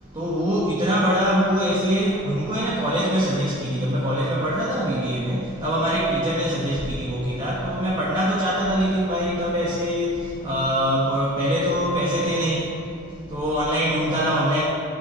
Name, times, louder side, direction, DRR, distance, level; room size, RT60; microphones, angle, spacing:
voice 1, 0.2-10.1 10.4-12.7 13.3-14.6, equal, 25° right, -7 dB, 1.7 m, -23 dB
13.0 x 6.0 x 5.5 m, 2.6 s
head